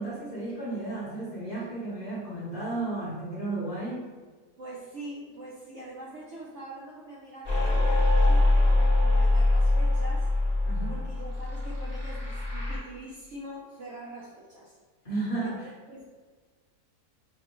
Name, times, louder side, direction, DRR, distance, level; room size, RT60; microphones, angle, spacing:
voice 1, 0.0-4.1 10.7-11.0 15.0-15.7, right 2 dB, 40° left, -6 dB, 1.0 m, -33 dB
voice 2, 4.6-10.3 10.9-14.8 15.4-15.5 15.9-16.0, right 1 dB, 65° right, -4 dB, 0.7 m, -43 dB
sound 1, 7.4-12.8, left 2 dB, 20° right, 0.9 m, -23 dB
5.9 x 2.2 x 2.9 m, 1.5 s
omnidirectional pair, 1.7 m